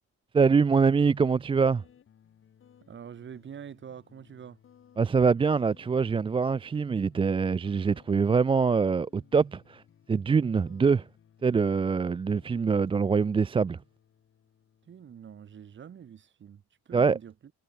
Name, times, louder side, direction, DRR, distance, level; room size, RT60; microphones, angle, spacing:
voice 1, 0.3-1.8 5.0-9.8 10.1-11.1 11.4-13.8 16.9-17.2, right 5 dB, 20° right, 0.4 m, -24 dB
sound 1, 1.1-16.2, left 8 dB, 45° left, 5.2 m, -60 dB
voice 2, 2.9-4.6 14.9-17.5, right 8 dB, 40° right, 2.8 m, -45 dB
cardioid pair, 170°, 30 cm